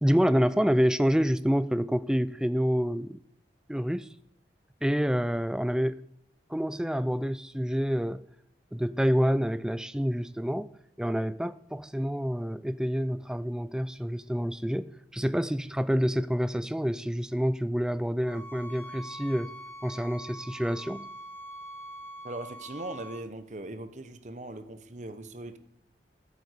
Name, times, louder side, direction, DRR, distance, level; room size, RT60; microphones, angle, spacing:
voice 1, 0.0-3.2 3.7-4.1 4.8-6.0 6.5-8.2 8.7-10.7 11.0-19.5 19.8-21.1, equal, 5° right, 0.3 m, -27 dB
sound 1, 18.2-23.2, equal, 10° left, 1.8 m, -44 dB
voice 2, 22.2-25.6, right 2 dB, 40° right, 0.9 m, -40 dB
9.2 x 8.2 x 8.2 m
head